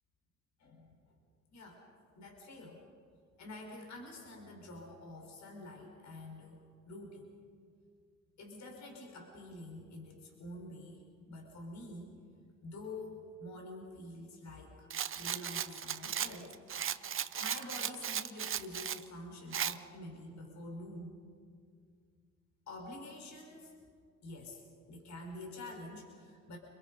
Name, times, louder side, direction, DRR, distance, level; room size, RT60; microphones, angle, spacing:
voice 1, 0.6-0.9 1.5-1.8 2.2-2.8 3.4-7.3 8.4-12.1 12.6-16.6 17.4-21.1 22.7-23.7 24.2-24.6 24.9-26.6, left 1 dB, 65° left, 1 dB, 5.0 m, -47 dB
Rattle, 14.9-19.0 19.5-19.8, right 9 dB, 45° right, 0.8 m, -36 dB
28.5 x 22.0 x 5.5 m, 2.1 s
cardioid pair, 90°, 30 cm